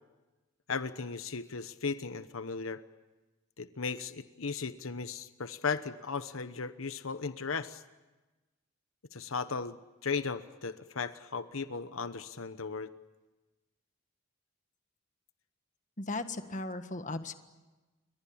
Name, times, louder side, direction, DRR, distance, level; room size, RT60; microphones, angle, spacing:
voice 1, 0.7-2.8 3.6-7.8 9.1-9.8 10.0-12.9, left 5 dB, 85° left, 11 dB, 1.1 m, -36 dB
voice 2, 16.0-17.3, left 2 dB, 40° left, 9 dB, 1.6 m, -37 dB
29.5 x 23.0 x 8.7 m, 1.2 s
head